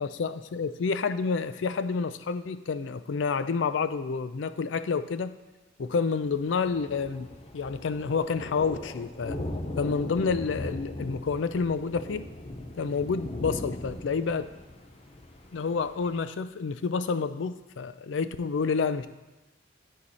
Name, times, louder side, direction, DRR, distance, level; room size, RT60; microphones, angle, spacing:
voice 1, 0.0-5.3 5.8-7.3 7.5-9.4 9.8-12.3 12.8-14.5 15.5-19.1, left 5 dB, 85° left, 12 dB, 0.4 m, -29 dB
Thunder, 6.2-16.2, left 1 dB, 35° left, 0.8 m, -39 dB
12.0 x 4.7 x 4.2 m, 1.1 s
head